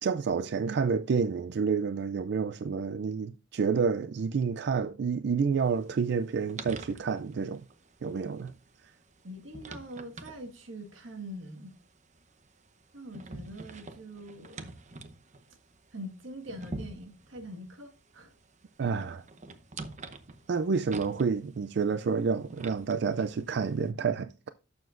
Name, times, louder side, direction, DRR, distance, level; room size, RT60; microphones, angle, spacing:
voice 1, 0.0-7.6 8.0-8.5 18.8-19.2 20.5-24.5, right 5 dB, 60° right, 0.4 m, -29 dB
sound 1, 5.6-23.9, right 2 dB, 40° right, 0.8 m, -47 dB
voice 2, 9.2-11.7 12.9-14.7 15.9-18.3, right 1 dB, 90° right, 1.6 m, -43 dB
12.0 x 7.1 x 2.5 m
head